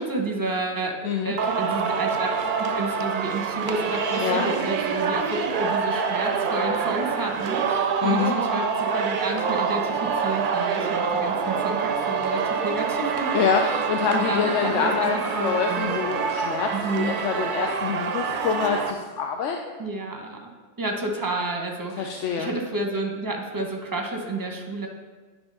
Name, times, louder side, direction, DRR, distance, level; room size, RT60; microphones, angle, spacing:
voice 1, 0.0-16.0 16.7-17.2 19.8-24.9, right 2 dB, 20° right, 2 dB, 0.7 m, -30 dB
voice 2, 1.0-1.3 4.2-4.5 8.0-8.4 13.3-19.6 22.0-22.5, left 6 dB, 85° left, 3 dB, 0.9 m, -26 dB
Singing, 1.4-18.9, right 6 dB, 60° right, 0.6 m, -26 dB
sound 1, 5.2-13.4, left 1 dB, 70° left, 1.5 m, -43 dB
9.7 x 3.6 x 5.3 m, 1.4 s
omnidirectional pair, 1.2 m